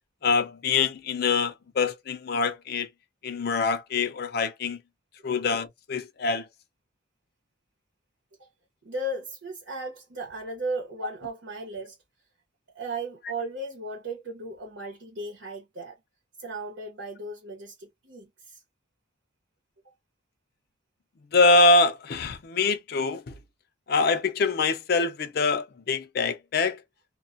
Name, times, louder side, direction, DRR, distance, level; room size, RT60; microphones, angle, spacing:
voice 1, 0.2-2.9 3.2-4.8 5.2-6.5 21.3-23.3 23.9-26.8, left 3 dB, 55° left, 0.4 m, -24 dB
voice 2, 8.8-12.0 12.7-16.0 16.4-18.6 19.8-19.9, right 2 dB, 80° right, 0.9 m, -36 dB
2.2 x 2.2 x 2.5 m
head